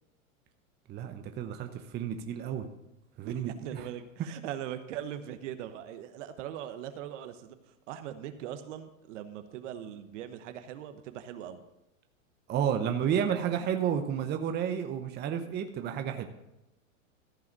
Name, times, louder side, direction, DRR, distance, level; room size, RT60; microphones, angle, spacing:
voice 1, 0.9-2.7 3.2-3.8 12.5-16.3, right 8 dB, 25° right, 6 dB, 0.8 m, -31 dB
voice 2, 3.2-11.6, right 10 dB, 60° right, 9 dB, 1.1 m, -41 dB
14.5 x 4.8 x 6.1 m, 0.91 s
hypercardioid pair, 120°, 40 cm